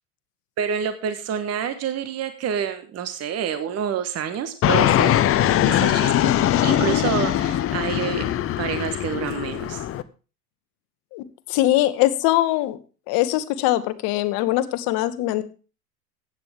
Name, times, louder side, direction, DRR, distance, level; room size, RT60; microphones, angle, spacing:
voice 1, 0.6-5.1 5.6-6.3 6.6-8.2 8.6-9.8, right 8 dB, 30° right, 9 dB, 1.4 m, -28 dB
Fixed-wing aircraft airplane, 4.6-10.0, left 12 dB, 30° left, 0.8 m, -21 dB
voice 2, 11.1-12.8 13.1-15.4, left 15 dB, 50° left, 12 dB, 1.4 m, -22 dB
15.0 x 9.2 x 3.7 m, 0.35 s
hypercardioid pair, 95°, 48 cm